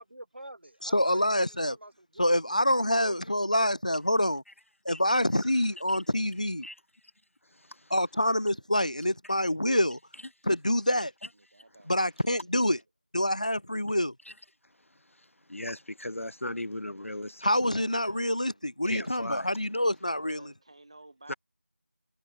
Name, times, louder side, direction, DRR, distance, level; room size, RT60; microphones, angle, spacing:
voice 1, 0.0-2.3 2.8-4.0 18.9-19.1, right 1 dB, 50° right, 3.8 m, -47 dB
voice 2, 0.8-1.8 2.2-4.4 4.8-6.7 7.9-10.0 10.4-11.1 11.9-12.8 13.1-14.1 17.4-20.5, left 1 dB, 30° left, 0.7 m, -26 dB
voice 3, 11.3-12.3 17.6-18.7 20.1-21.4, right 2 dB, 25° right, 2.4 m, -54 dB
voice 4, 15.5-17.5 18.9-19.5 21.3-21.4, left 1 dB, 65° left, 0.8 m, -36 dB
figure-of-eight pair, 175°, 8 cm